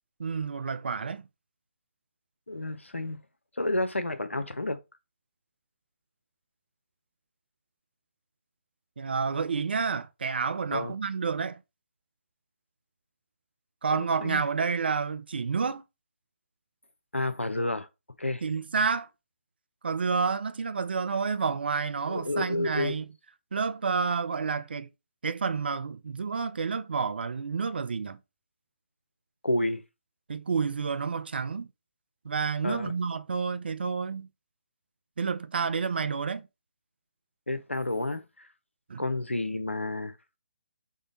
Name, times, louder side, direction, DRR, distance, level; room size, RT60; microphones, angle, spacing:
voice 1, 0.2-1.3 9.0-11.6 13.8-15.8 18.4-19.1 19.8-23.0 23.5-24.9 25.2-28.2 30.3-31.7 32.2-34.3 35.2-36.5 38.9-39.0, right 5 dB, 55° right, 0.3 m, -29 dB
voice 2, 2.5-3.2 3.6-4.8 10.7-10.9 13.9-14.4 17.1-17.9 18.2-18.4 22.1-22.9 29.4-29.8 32.6-32.9 37.5-38.5 39.0-40.1, left 2 dB, 85° left, 0.6 m, -30 dB
3.7 x 2.1 x 3.7 m
figure-of-eight pair, 140°, 7 cm